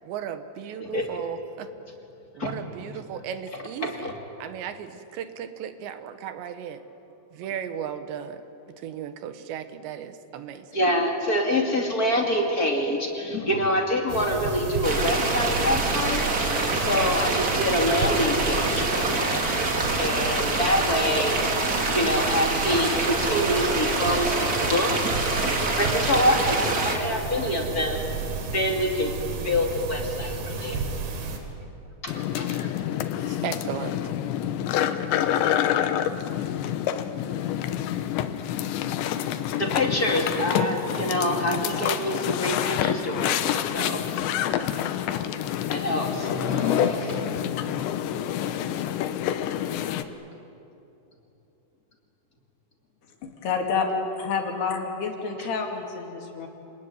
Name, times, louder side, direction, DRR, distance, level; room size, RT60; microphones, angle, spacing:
voice 1, 0.0-1.7 2.3-4.1 4.4-6.8 7.3-8.4 8.8-10.7 33.3-34.0, right 9 dB, 85° right, 10 dB, 3.5 m, -35 dB
voice 2, 3.8-4.1 10.7-19.6 20.0-21.4 21.9-24.9 25.8-28.0 28.5-29.1 29.4-30.8 32.0-32.7 39.6-44.0 45.7-48.1 55.4-55.5, left 1 dB, 25° left, 1 dB, 2.2 m, -26 dB
sound 1, 14.1-31.4, right 4 dB, 65° right, 4.3 m, -32 dB
sound 2, 14.8-27.0, right 2 dB, 35° right, 1.5 m, -26 dB
sound 3, 32.1-50.0, left 10 dB, 90° left, 3.3 m, -27 dB
voice 3, 53.2-56.5, left 5 dB, 70° left, 3 dB, 4.3 m, -28 dB
28.5 x 20.0 x 9.6 m, 2.8 s
omnidirectional pair, 5.0 m